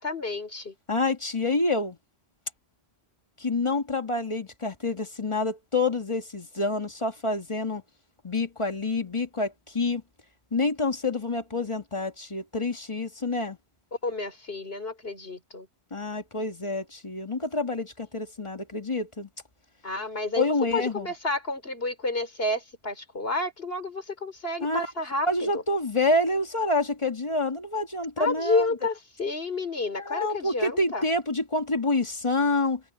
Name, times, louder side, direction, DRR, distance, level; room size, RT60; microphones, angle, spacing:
voice 1, 0.0-0.7 14.0-15.7 19.8-25.6 28.2-31.0, left 2 dB, 65° left, 4.4 m, -30 dB
voice 2, 0.9-2.0 3.4-7.8 8.2-10.0 10.5-13.6 15.9-19.3 20.4-21.1 24.6-24.9 25.3-28.7 30.0-32.8, left 2 dB, 30° left, 1.6 m, -27 dB
omnidirectional pair, 1.1 m